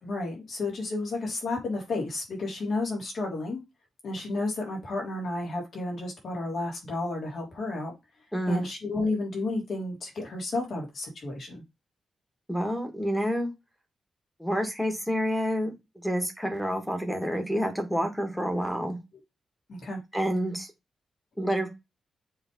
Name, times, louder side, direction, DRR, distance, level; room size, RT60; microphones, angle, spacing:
voice 1, 0.0-3.6 4.0-7.9 8.5-11.6 19.7-20.0, left 2 dB, 55° left, -1 dB, 3.3 m, -32 dB
voice 2, 8.3-8.6 12.5-13.5 14.4-15.7 16.0-19.0 20.1-20.7 21.4-21.7, equal, 5° left, 4 dB, 1.7 m, -28 dB
7.1 x 3.5 x 5.3 m, 0.23 s
wide cardioid pair, 160°, 0 cm